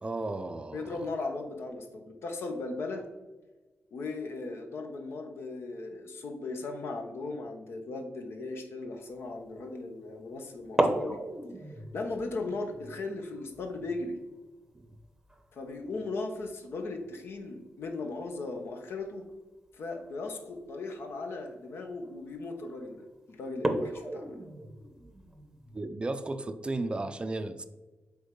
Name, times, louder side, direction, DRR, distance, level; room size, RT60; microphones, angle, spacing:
voice 1, 0.0-1.0 14.7-14.9 25.7-27.6, right 2 dB, 25° right, 10 dB, 0.4 m, -34 dB
voice 2, 0.7-3.0 3.9-11.2 11.9-14.2 15.5-19.3 19.7-24.4, left 3 dB, 70° left, 5 dB, 1.1 m, -37 dB
sound 1, 9.1-9.4 10.6-17.1 17.3-17.4 17.8-18.2 19.2-19.4 20.0-20.1 20.6-20.7 21.1-21.4 22.0-22.4 22.8-22.9 23.5-25.8, right 1 dB, 10° right, 0.8 m, -35 dB
7.7 x 3.5 x 5.3 m, 1.2 s
cardioid pair, 110°, 4 cm